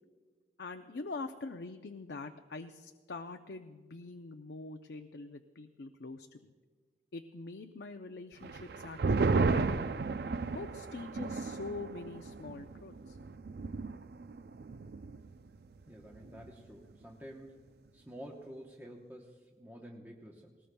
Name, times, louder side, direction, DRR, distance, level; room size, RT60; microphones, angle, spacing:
voice 1, 0.6-6.5 7.1-9.8 10.5-13.2, left 3 dB, 70° left, 6 dB, 0.6 m, -44 dB
sound 1, 8.4-15.4 15.7-15.8 16.1-16.6, right 4 dB, 60° right, 0.4 m, -34 dB
voice 2, 15.9-17.5 17.9-20.6, equal, 10° right, -1 dB, 0.9 m, -49 dB
19.0 x 19.0 x 2.3 m, 1.4 s
head